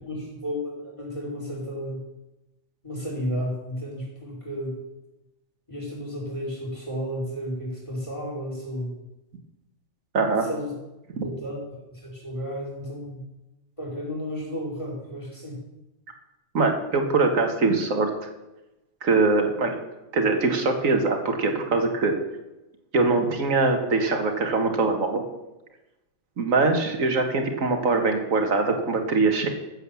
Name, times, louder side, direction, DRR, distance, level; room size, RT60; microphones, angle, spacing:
voice 1, 0.0-2.0 2.8-4.8 5.7-8.9 10.4-10.7 11.2-11.6 11.9-13.2 13.8-15.6, equal, 25° left, -3 dB, 5.1 m, -33 dB
voice 2, 10.1-10.5 11.2-11.3 16.5-18.3 19.0-19.8 20.1-22.2 22.9-25.2 26.4-29.5, right 3 dB, 80° right, 4 dB, 2.0 m, -22 dB
14.5 x 8.0 x 7.1 m, 0.98 s
omnidirectional pair, 1.4 m